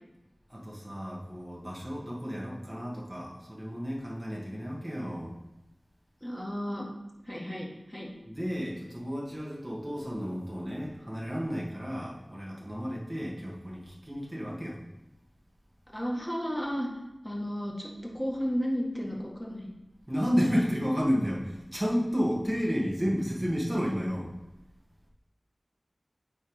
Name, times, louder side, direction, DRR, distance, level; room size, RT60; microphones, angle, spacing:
voice 1, 0.5-5.3 8.3-14.8 20.1-24.3, equal, 20° right, -5 dB, 2.0 m, -31 dB
voice 2, 6.2-6.9 7.2-8.1 15.9-16.9 17.2-19.7, equal, 10° left, -2 dB, 1.8 m, -33 dB
9.3 x 3.6 x 4.8 m, 0.97 s
wide cardioid pair, 55°, 0 cm